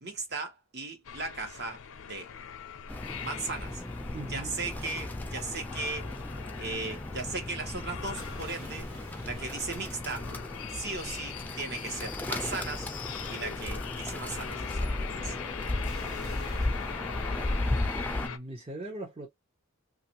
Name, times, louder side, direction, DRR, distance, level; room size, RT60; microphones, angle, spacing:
voice 1, 0.0-1.8 2.1-2.3 3.2-3.8 4.3-6.1 6.6-8.9 9.2-10.3 10.7-12.9 13.3-15.3, right 3 dB, 55° right, 1.0 m, -37 dB
sound 1, 1.0-18.4, left 8 dB, 75° left, 0.5 m, -42 dB
sound 2, 1.0-1.2 1.5-6.1 6.4-6.7 7.1-7.2 8.2-9.8 10.4-10.5 11.2-11.3 11.7-11.8 15.8-17.1, right 2 dB, 85° right, 1.7 m, -54 dB
Bird, 2.9-18.3, left 1 dB, 10° left, 0.4 m, -35 dB
voice 2, 4.1-4.5 18.2-19.3, right 1 dB, 30° right, 0.7 m, -39 dB
3.0 x 2.5 x 2.8 m
head